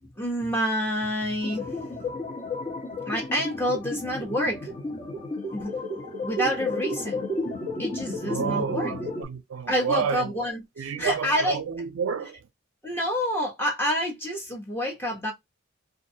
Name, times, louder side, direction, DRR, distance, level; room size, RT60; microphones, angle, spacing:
voice 1, 0.0-2.1 3.1-4.7 5.5-7.2 7.8-8.9 9.7-11.6 12.8-15.3, equal, 10° left, 0.8 m, -28 dB
sound 1, 1.4-9.3, left 2 dB, 40° left, 1.1 m, -32 dB
voice 2, 8.3-10.4 10.8-12.5, right 6 dB, 85° right, 0.4 m, -30 dB
2.6 x 2.2 x 2.6 m
head